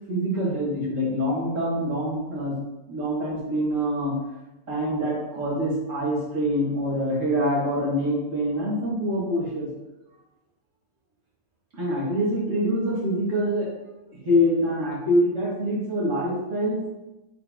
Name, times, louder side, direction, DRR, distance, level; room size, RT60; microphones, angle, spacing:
voice 1, 0.1-2.6 2.9-4.2 4.7-9.7 11.7-13.7 14.2-17.0, equal, 55° right, -6 dB, 2.5 m, -25 dB
8.0 x 4.6 x 3.0 m, 0.99 s
omnidirectional pair, 1.6 m